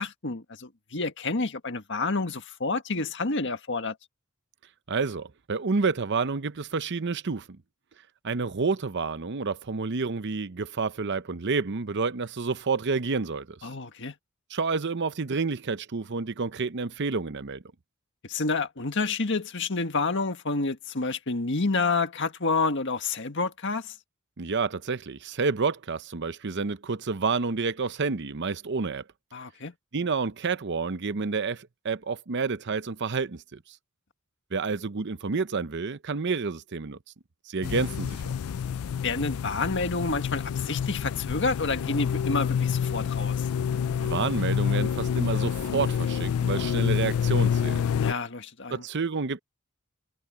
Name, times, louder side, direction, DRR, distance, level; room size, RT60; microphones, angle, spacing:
voice 1, 0.0-4.0 13.6-14.1 18.2-23.9 29.3-29.7 39.0-43.3 48.0-48.8, left 3 dB, 60° left, 1.7 m, -29 dB
voice 2, 4.9-7.5 8.2-13.6 14.5-17.6 24.4-29.0 29.9-33.6 34.5-37.0 37.5-38.3 44.0-47.8 48.7-49.4, right 4 dB, 55° right, 0.7 m, -29 dB
sound 1, 37.6-48.1, left 7 dB, 80° left, 0.4 m, -27 dB
head